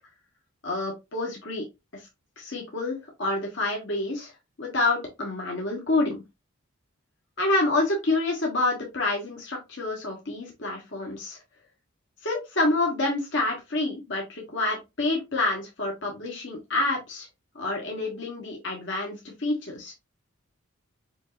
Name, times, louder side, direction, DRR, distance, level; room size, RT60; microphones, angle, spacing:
voice 1, 0.6-1.6 1.9-2.0 2.4-4.3 4.6-6.2 7.4-11.4 12.2-17.3 17.5-19.9, left 2 dB, 55° left, -1 dB, 1.2 m, -28 dB
5.2 x 2.7 x 2.5 m, 0.23 s
head